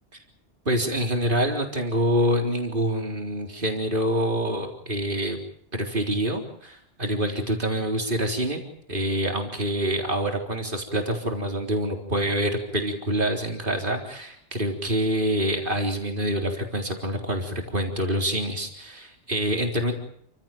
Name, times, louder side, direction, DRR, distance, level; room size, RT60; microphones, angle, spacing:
voice 1, 0.7-5.4 5.7-8.6 8.9-19.9, equal, 45° right, 3 dB, 4.1 m, -26 dB
29.0 x 16.0 x 9.2 m, 0.68 s
omnidirectional pair, 1.2 m